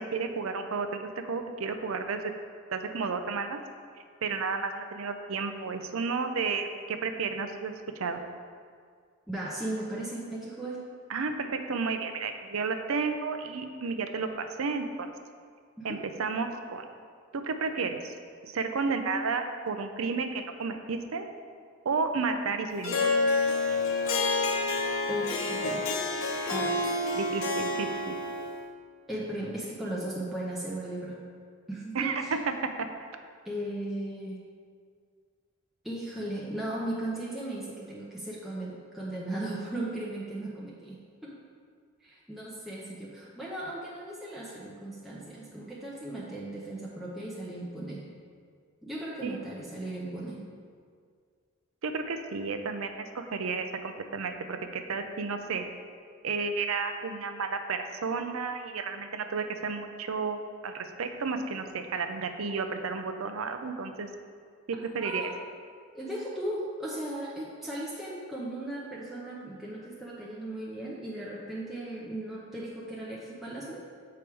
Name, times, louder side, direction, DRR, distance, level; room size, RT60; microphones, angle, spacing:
voice 1, 0.0-2.2 2.7-3.6 4.2-8.2 11.1-15.1 15.8-16.9 17.3-18.1 18.4-21.3 21.8-23.2 27.1-28.1 31.9-32.9 49.2-49.4 51.8-55.6 56.2-64.1 64.7-65.3, right 4 dB, 85° right, 7 dB, 0.6 m, -32 dB
voice 2, 9.3-10.8 15.8-16.0 25.1-25.9 26.5-26.8 29.1-31.2 31.7-32.3 33.4-34.4 35.8-41.3 42.0-48.0 48.8-50.4 65.0-65.3 65.9-73.8, right 1 dB, ahead, -6 dB, 0.6 m, -37 dB
Harp, 22.8-28.7, left 3 dB, 70° left, 0.7 m, -28 dB
7.0 x 4.7 x 4.6 m, 2.1 s
head